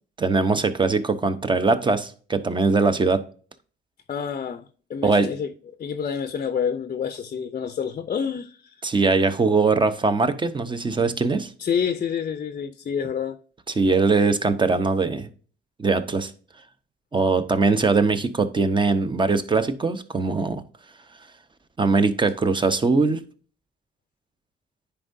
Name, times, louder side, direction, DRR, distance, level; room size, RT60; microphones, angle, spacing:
voice 1, 0.2-3.2 5.0-5.3 8.8-11.5 13.8-15.3 15.8-16.3 17.1-20.6 21.8-23.2, right 4 dB, 25° right, 0.8 m, -21 dB
voice 2, 4.1-4.6 4.9-5.5 5.8-9.0 11.6-13.4, left 7 dB, 40° left, 0.5 m, -28 dB
9.9 x 4.5 x 2.6 m
cardioid pair, 90°, 20 cm